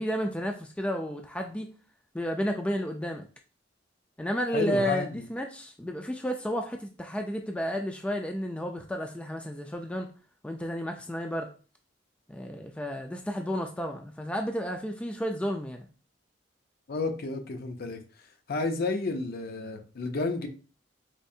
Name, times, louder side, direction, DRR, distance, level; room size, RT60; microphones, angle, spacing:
voice 1, 0.0-1.7 2.1-3.3 4.2-10.1 10.4-11.5 12.3-15.9, equal, 5° left, 3 dB, 0.3 m, -32 dB
voice 2, 4.5-5.2 16.9-18.0 18.5-20.5, left 3 dB, 55° left, 6 dB, 0.5 m, -31 dB
4.4 x 2.4 x 2.7 m, 0.36 s
head